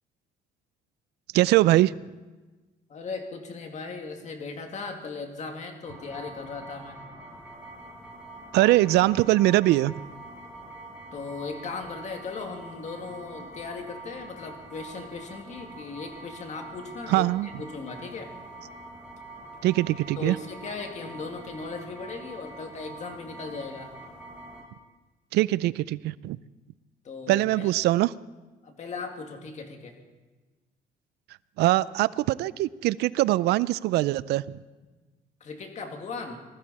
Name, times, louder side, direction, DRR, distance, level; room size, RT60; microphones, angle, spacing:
voice 1, 1.3-2.0 8.5-9.9 17.1-17.5 19.6-20.4 25.3-26.4 27.3-28.1 31.6-34.4, right 17 dB, 80° right, 19 dB, 0.4 m, -22 dB
voice 2, 2.9-7.0 11.1-18.3 20.2-23.9 27.0-27.7 28.6-30.0 35.4-36.4, left 4 dB, 45° left, 4 dB, 2.3 m, -37 dB
sound 1, 5.8-24.6, right 2 dB, 5° right, 6.2 m, -45 dB
20.0 x 14.5 x 4.2 m, 1.2 s
cardioid pair, 110°, 17 cm